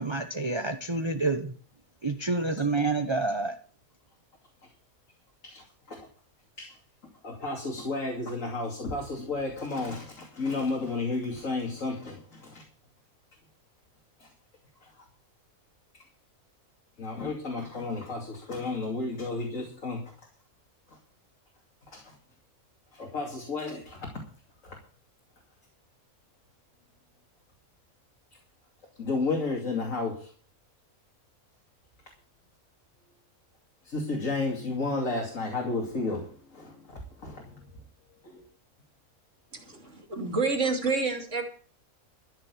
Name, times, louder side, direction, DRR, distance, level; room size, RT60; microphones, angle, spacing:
voice 1, 0.0-1.5 2.0-3.5, right 3 dB, 20° right, 7 dB, 0.9 m, -28 dB
voice 2, 5.4-6.1 6.6-6.8 7.2-12.6 14.2-14.3 14.8-15.0 17.0-20.0 20.9-21.0 21.9-22.2 22.9-24.1 24.6-24.8 29.0-30.3 33.8-37.8 38.2-38.4, left 3 dB, 60° left, 0 dB, 3.0 m, -32 dB
voice 3, 39.5-41.4, right 4 dB, 55° right, 4 dB, 3.1 m, -28 dB
13.5 x 7.2 x 8.4 m, 0.43 s
omnidirectional pair, 1.5 m